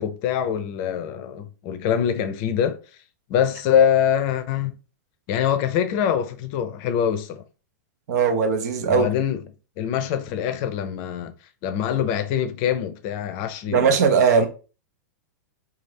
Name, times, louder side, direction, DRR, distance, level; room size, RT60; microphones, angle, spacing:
voice 1, 0.0-2.8 3.3-4.8 5.3-7.4 8.9-9.4 9.8-11.3 11.6-14.0 14.4-14.5, left 9 dB, 45° left, 0.5 m, -24 dB
voice 2, 8.1-9.1 13.7-14.5, right 6 dB, 65° right, 0.7 m, -19 dB
2.6 x 2.4 x 3.3 m
hypercardioid pair, 125°, 10 cm